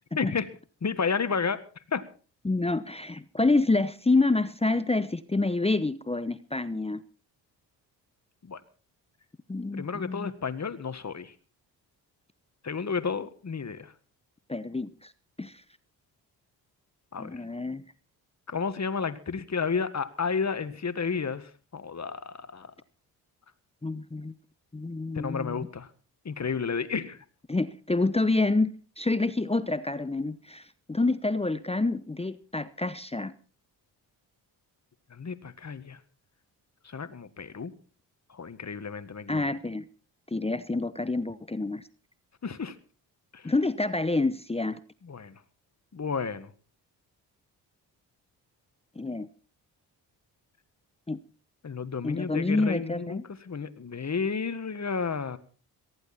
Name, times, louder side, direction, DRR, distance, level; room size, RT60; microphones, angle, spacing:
voice 1, 0.2-0.5 0.8-1.6 1.9-2.0 8.4-8.6 9.7-11.3 12.6-13.9 17.1-17.4 18.5-22.7 25.2-25.9 26.3-27.2 35.1-36.0 36.8-37.7 38.3-39.5 42.4-42.8 43.3-43.5 45.0-45.4 45.9-46.5 51.6-53.2 53.5-55.4, left 5 dB, 35° left, 12 dB, 1.7 m, -32 dB
voice 2, 2.4-7.0 9.5-10.3 14.5-15.1 15.4-15.6 17.2-17.8 23.8-24.3 24.7-25.6 27.5-33.3 39.3-39.8 40.3-41.8 43.4-44.8 49.0-49.3 51.1-51.2 52.0-53.2, left 2 dB, 15° left, 14 dB, 0.9 m, -28 dB
18.5 x 14.5 x 4.3 m, 0.39 s
hypercardioid pair, 45°, 46 cm